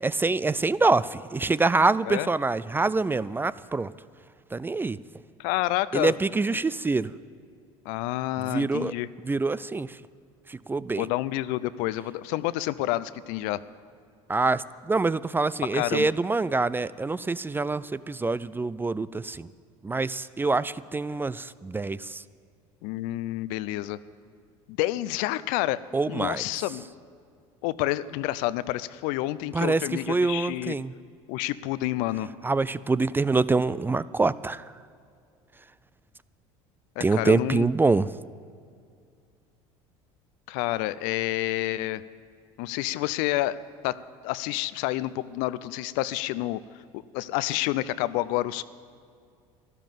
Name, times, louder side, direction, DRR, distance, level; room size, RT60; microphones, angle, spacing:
voice 1, 0.0-3.9 4.5-5.0 5.9-7.1 8.5-8.9 9.2-10.0 10.5-11.1 14.3-19.5 19.8-22.2 25.9-26.6 29.5-30.9 32.4-34.6 37.0-38.1, right 3 dB, 15° right, 18 dB, 0.3 m, -25 dB
voice 2, 5.4-6.1 7.9-9.1 10.9-13.6 15.7-16.1 22.8-24.0 24.7-25.8 26.1-26.8 27.6-30.8 31.3-32.3 37.0-37.7 40.5-42.0 42.6-43.6 43.8-44.0 44.2-46.6 46.9-48.6, left 16 dB, 70° left, 17 dB, 0.5 m, -29 dB
12.5 x 12.0 x 7.5 m, 2.3 s
hypercardioid pair, 80°, 15 cm